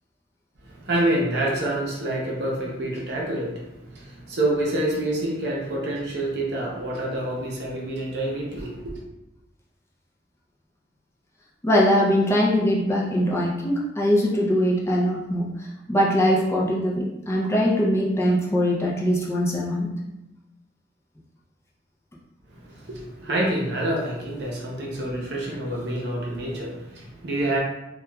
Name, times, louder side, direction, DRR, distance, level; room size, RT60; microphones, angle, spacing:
voice 1, 0.6-9.0 22.5-27.6, right 1 dB, 65° right, -2 dB, 0.6 m, -27 dB
voice 2, 11.6-19.9, equal, 15° left, -4 dB, 0.4 m, -22 dB
2.8 x 2.3 x 2.2 m, 0.94 s
head